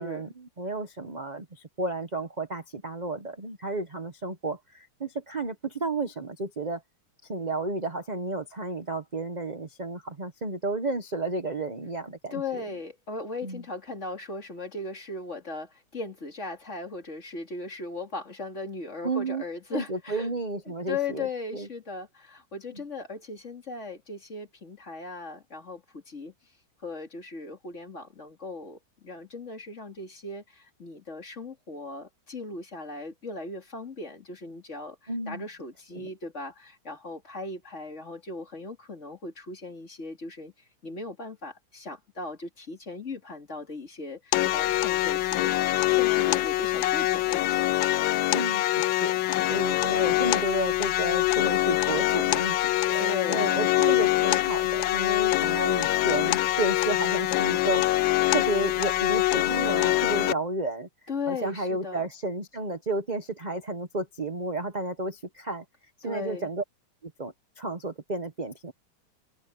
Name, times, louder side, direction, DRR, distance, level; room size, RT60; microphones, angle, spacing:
voice 1, 0.0-6.8 7.3-12.6 13.4-13.6 19.0-19.4 19.7-21.3 21.5-21.7 35.1-35.5 35.9-36.1 48.3-49.2 49.5-60.9 61.3-65.6 66.0-66.6 67.0-68.7, right 2 dB, 30° right, 0.8 m, -32 dB
voice 2, 12.3-20.3 20.7-26.3 26.8-40.5 40.8-45.5 45.9-47.7 53.0-53.4 61.1-62.0 66.0-66.5, left 3 dB, 35° left, 2.7 m, -37 dB
sound 1, 44.3-60.3, left 16 dB, 75° left, 1.2 m, -24 dB
omnidirectional pair, 2.4 m